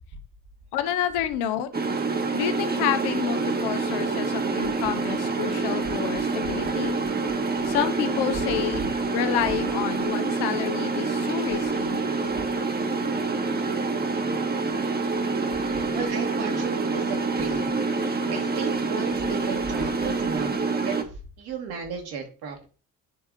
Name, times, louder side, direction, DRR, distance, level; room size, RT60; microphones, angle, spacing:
voice 1, 0.7-1.7 2.3-7.0 7.6-8.8 9.1-12.0, left 10 dB, 65° left, 9 dB, 0.9 m, -29 dB
sound 1, 1.7-21.0, right 4 dB, 20° right, 1.2 m, -27 dB
voice 2, 15.6-20.6 20.9-22.7, right 5 dB, 65° right, 3 dB, 1.9 m, -35 dB
9.5 x 3.6 x 3.9 m, 0.35 s
hypercardioid pair, 55°, 42 cm